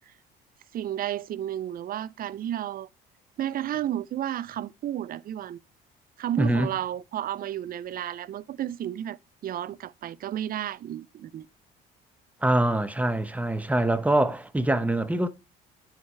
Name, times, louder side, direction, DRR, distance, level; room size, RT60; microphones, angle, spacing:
voice 1, 0.7-2.9 3.4-5.6 6.2-9.2 9.4-11.5, right 11 dB, 45° right, 0.4 m, -32 dB
voice 2, 6.4-6.7 12.4-15.3, right 1 dB, 5° right, 0.8 m, -24 dB
9.3 x 4.8 x 3.2 m
supercardioid pair, 75°, 21 cm